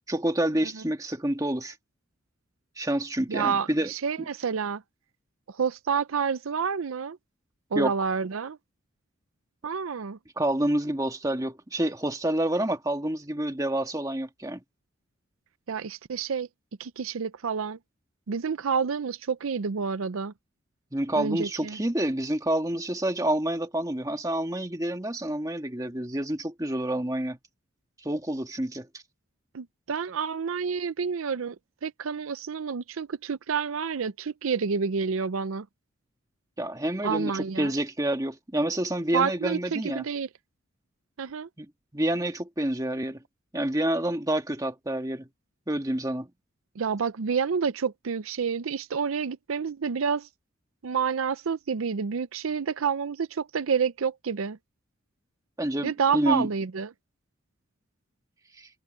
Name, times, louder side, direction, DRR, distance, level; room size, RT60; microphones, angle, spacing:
voice 1, 0.0-1.7 2.8-3.9 7.7-7.9 10.4-14.6 20.9-27.4 28.0-28.9 36.6-40.0 41.6-41.7 41.9-43.2 43.5-45.3 45.7-46.3 55.6-56.5 58.6-58.7, right 1 dB, 15° right, 1.5 m, -28 dB
voice 2, 3.3-4.8 5.5-7.2 7.7-8.6 9.6-10.2 15.7-16.5 16.8-17.8 18.3-20.3 21.2-21.8 29.5-31.6 31.8-35.7 37.0-37.7 39.1-40.3 41.2-41.5 46.8-50.3 50.8-54.6 55.8-56.9, right 6 dB, 85° right, 0.5 m, -29 dB
head